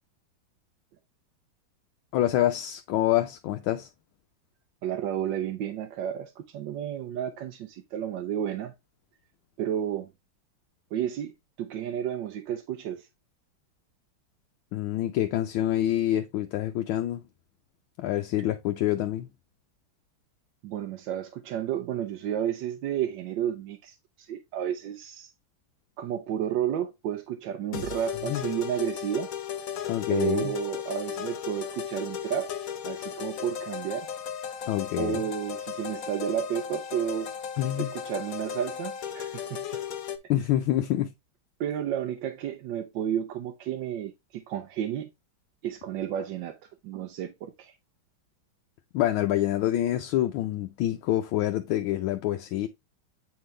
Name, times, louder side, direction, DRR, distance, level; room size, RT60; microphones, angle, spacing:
voice 1, 2.1-3.9 14.7-17.2 18.0-19.3 28.3-28.4 29.9-30.5 34.7-35.3 37.6-37.9 40.3-41.1 48.9-52.7, left 13 dB, 80° left, 1.4 m, -26 dB
voice 2, 4.8-8.7 9.6-10.1 10.9-13.1 20.6-25.3 26.0-29.3 30.1-32.5 32.8-34.1 35.0-37.3 37.8-39.8 41.6-45.1 45.6-46.6 46.8-47.7, right 10 dB, 70° right, 1.3 m, -32 dB
sound 1, 27.7-40.2, left 8 dB, 60° left, 0.9 m, -36 dB
8.7 x 3.8 x 3.1 m
omnidirectional pair, 2.3 m